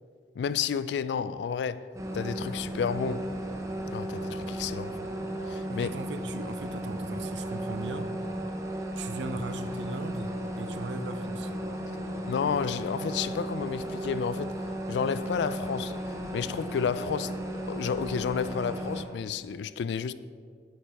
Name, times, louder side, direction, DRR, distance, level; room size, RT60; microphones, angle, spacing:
voice 1, 0.4-1.9 2.1-3.3 3.9-5.0 5.5-5.9 12.3-14.5 14.9-17.4 17.7-20.1, left 6 dB, 80° left, 0.3 m, -31 dB
sound 1, 1.9-19.0, right 1 dB, 20° right, 0.7 m, -35 dB
voice 2, 5.7-8.1 8.9-11.5, right 3 dB, 85° right, 0.5 m, -38 dB
8.7 x 7.6 x 3.5 m
head